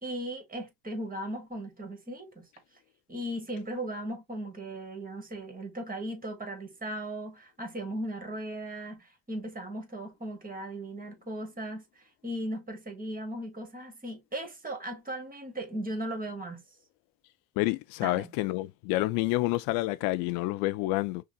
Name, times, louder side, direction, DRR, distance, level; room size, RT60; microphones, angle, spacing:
voice 1, 0.0-2.5 3.1-16.6 18.0-18.3, right 1 dB, 15° right, 1.5 m, -37 dB
voice 2, 17.6-21.2, left 19 dB, 45° left, 0.4 m, -28 dB
5.5 x 2.2 x 2.5 m
hypercardioid pair, 65°, 48 cm